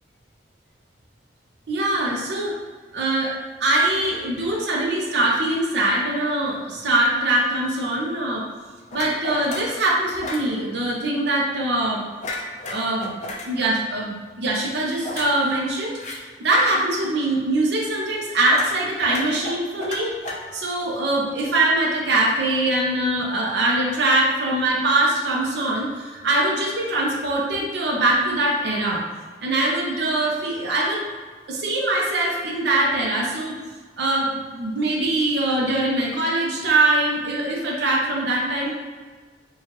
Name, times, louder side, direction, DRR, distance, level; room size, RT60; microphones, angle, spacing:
voice 1, 1.7-2.6 2.9-3.3 3.6-8.4 8.9-12.0 12.7-13.2 13.4-16.0 16.4-20.1 20.5-29.0 29.4-31.0 31.5-33.5 34.0-38.7, right 2 dB, 70° right, -3 dB, 0.6 m, -22 dB
sound 1, 8.9-9.8 10.2-10.5 12.2-13.5 15.0-16.2 18.5-18.8 19.1-20.8, left 2 dB, 40° left, 0.5 m, -33 dB
4.6 x 2.3 x 2.9 m, 1.4 s
head